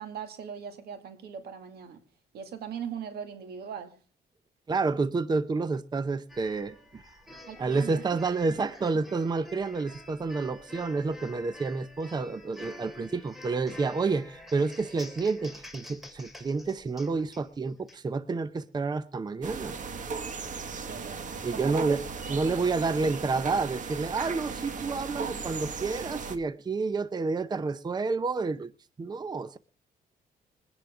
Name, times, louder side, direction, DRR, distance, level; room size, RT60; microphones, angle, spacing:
voice 1, 0.0-2.0 2.3-4.0 7.5-8.1 20.9-21.2 21.5-22.0, right 7 dB, 75° right, 2.3 m, -39 dB
voice 2, 4.7-7.1 7.6-19.8 21.4-22.0 22.3-28.7 29.0-29.6, right 4 dB, 25° right, 0.6 m, -29 dB
sound 1, 6.3-18.0, left 1 dB, ahead, 3.1 m, -48 dB
sound 2, 19.4-26.4, right 5 dB, 50° right, 1.7 m, -37 dB
22.5 x 10.5 x 3.6 m
cardioid pair, 95°, 16 cm